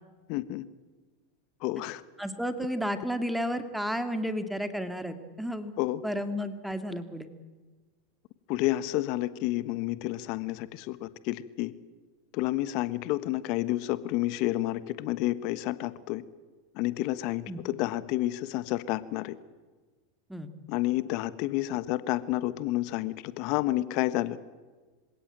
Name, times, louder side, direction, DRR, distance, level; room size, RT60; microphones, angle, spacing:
voice 1, 0.3-0.6 1.6-2.0 5.8-6.0 8.5-11.7 12.3-16.2 16.7-19.4 20.7-24.4, left 16 dB, 55° left, 15 dB, 1.2 m, -30 dB
voice 2, 2.2-5.8 6.0-7.3 17.5-17.6 20.3-20.5, equal, ahead, 9 dB, 2.1 m, -32 dB
27.0 x 17.0 x 9.1 m, 1.3 s
hypercardioid pair, 95°, 0 cm